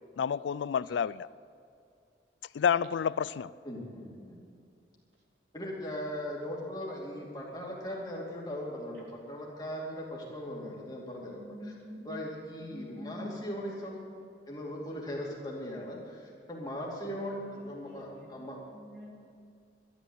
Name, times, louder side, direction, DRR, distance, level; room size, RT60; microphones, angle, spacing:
voice 1, 0.2-1.3 2.5-3.5, left 7 dB, 90° left, 19 dB, 0.3 m, -29 dB
voice 2, 3.6-4.4 5.5-11.8 12.0-14.0 14.5-18.6, equal, 20° left, -3 dB, 2.6 m, -39 dB
voice 3, 11.3-12.2 12.7-13.5 17.8-18.3 18.7-19.1, left 1 dB, 70° right, -3 dB, 3.8 m, -45 dB
12.5 x 11.5 x 8.2 m, 2.4 s
head